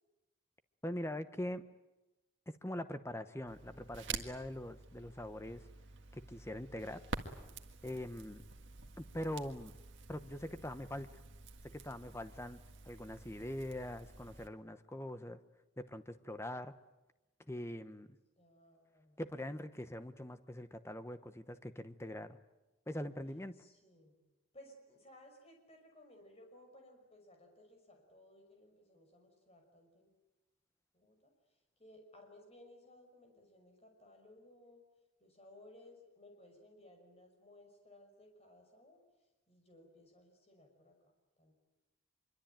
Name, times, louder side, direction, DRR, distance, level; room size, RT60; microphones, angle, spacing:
voice 1, 0.8-1.6 2.5-5.7 6.1-7.0 7.8-8.4 9.0-9.8 10.1-11.2 11.7-12.6 12.8-15.4 15.8-16.7 17.5-18.1 19.2-22.4 22.9-23.5, left 1 dB, 15° left, 10 dB, 1.0 m, -43 dB
Crackle, 3.5-14.5, right 4 dB, 60° right, 1.8 m, -49 dB
voice 2, 18.4-19.2 23.6-24.2 24.5-30.1 30.9-31.3 31.8-34.8 35.2-39.0 39.5-41.0 41.4-41.5, left 1 dB, 30° left, 3 dB, 5.8 m, -60 dB
24.5 x 23.5 x 9.1 m, 1.0 s
head